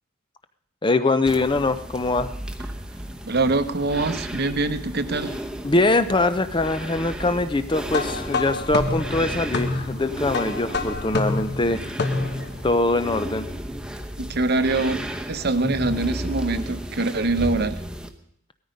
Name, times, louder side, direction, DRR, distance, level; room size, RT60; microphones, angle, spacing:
voice 1, 0.8-2.3 5.6-11.9 12.6-13.5, left 2 dB, 20° left, 11 dB, 0.6 m, -23 dB
sound 1, 1.2-18.1, equal, 5° right, 0.9 m, -34 dB
voice 2, 3.2-5.3 14.2-15.0 15.3-17.8, right 2 dB, 50° right, 11 dB, 0.9 m, -24 dB
sound 2, 7.9-12.6, left 3 dB, 50° left, 1.1 m, -28 dB
17.5 x 13.5 x 5.2 m, 0.73 s
head